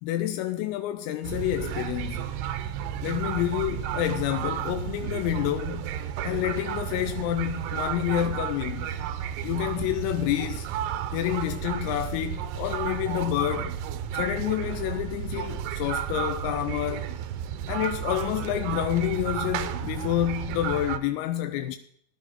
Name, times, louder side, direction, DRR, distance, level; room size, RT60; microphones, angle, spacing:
voice 1, 0.0-2.3 3.0-8.9 9.4-10.7 11.1-13.8 14.1-17.1 17.7-21.8, left 13 dB, 85° left, 3.4 m, -28 dB
sound 1, 1.2-21.0, right 9 dB, 80° right, 2.9 m, -32 dB
18.0 x 9.9 x 3.7 m
omnidirectional pair, 6.0 m